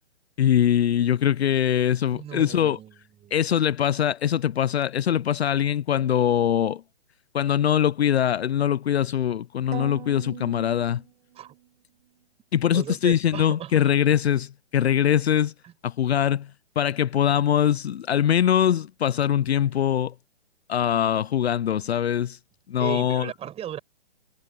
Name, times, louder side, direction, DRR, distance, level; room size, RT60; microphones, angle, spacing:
voice 1, 0.4-2.8 3.3-6.8 7.3-11.0 12.5-15.5 15.8-16.5 16.8-20.1 20.7-22.4 22.7-23.3, left 10 dB, 65° left, 0.8 m, -22 dB
voice 2, 2.1-2.9 3.2-3.3 11.3-11.5 12.7-13.7 15.6-15.7 22.8-23.8, right 11 dB, 15° right, 6.4 m, -36 dB
sound 1, 9.7-11.7, right 14 dB, 40° right, 2.1 m, -40 dB
hypercardioid pair, 135°, 35 cm